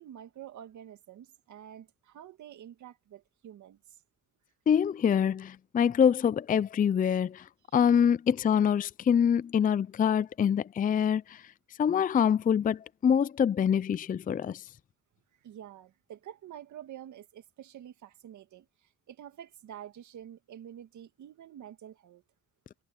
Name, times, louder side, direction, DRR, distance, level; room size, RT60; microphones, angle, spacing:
voice 1, 0.0-3.8 7.7-7.9 15.4-22.2, right 10 dB, 70° right, 2.3 m, -48 dB
voice 2, 4.7-7.5 7.7-11.4 11.8-14.6, left 8 dB, 30° left, 0.4 m, -25 dB
cardioid pair, 90°, 30 cm